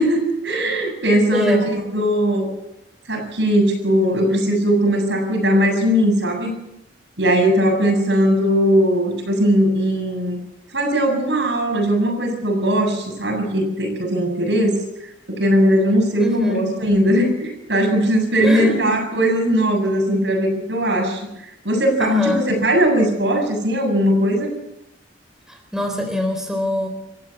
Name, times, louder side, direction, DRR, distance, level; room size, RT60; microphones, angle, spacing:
voice 1, 0.0-2.5 3.1-6.5 7.2-10.4 10.7-14.8 15.3-21.3 21.6-24.5, equal, 70° right, 3 dB, 7.3 m, -19 dB
voice 2, 1.1-1.7 16.2-16.7 18.4-19.0 22.0-22.5 25.5-26.9, left 1 dB, 5° right, 3 dB, 3.9 m, -23 dB
27.5 x 15.5 x 7.3 m, 0.86 s
head